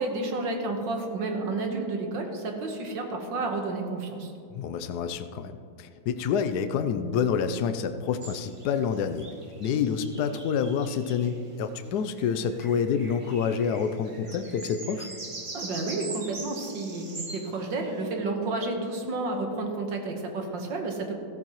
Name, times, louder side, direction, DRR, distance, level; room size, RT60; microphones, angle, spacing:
voice 1, 0.0-4.3 15.5-21.1, right 3 dB, 70° right, 3 dB, 1.9 m, -31 dB
voice 2, 4.5-9.3 9.6-15.1, left 6 dB, 70° left, 9 dB, 1.0 m, -28 dB
sound 1, 8.2-11.4 12.1-18.1, right 2 dB, 40° right, 0.4 m, -42 dB
15.0 x 13.5 x 3.0 m, 2.4 s
omnidirectional pair, 2.1 m